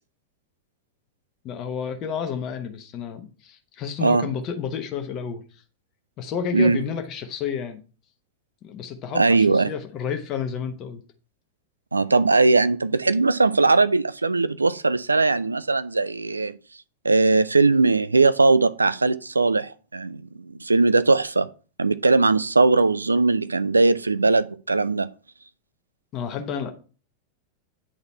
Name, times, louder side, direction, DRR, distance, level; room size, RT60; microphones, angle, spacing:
voice 1, 1.4-5.4 6.2-7.8 8.6-11.0 26.1-26.7, left 7 dB, 35° left, 1.0 m, -30 dB
voice 2, 9.1-9.7 11.9-16.6 17.0-21.5 21.8-25.1, right 3 dB, 80° right, 0.3 m, -20 dB
8.9 x 4.0 x 4.3 m
figure-of-eight pair, 90°, 0 cm